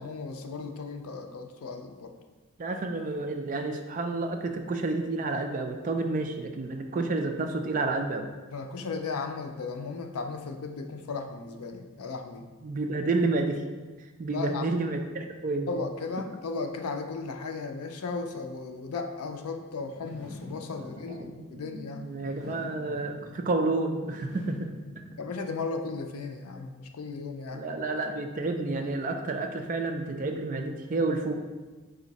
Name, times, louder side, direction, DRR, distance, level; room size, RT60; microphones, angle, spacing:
voice 1, 0.0-2.1 8.5-12.5 14.3-14.8 15.7-22.0 22.5-22.9 25.2-27.7, left 4 dB, 85° left, 6 dB, 0.4 m, -36 dB
voice 2, 2.6-8.3 12.6-13.6 14.2-15.7 20.8-24.7 27.5-31.3, right 3 dB, 35° right, 5 dB, 0.3 m, -30 dB
sound 1, 19.8-25.9, left 1 dB, 20° right, 1.3 m, -47 dB
4.9 x 2.6 x 4.0 m, 1.3 s
head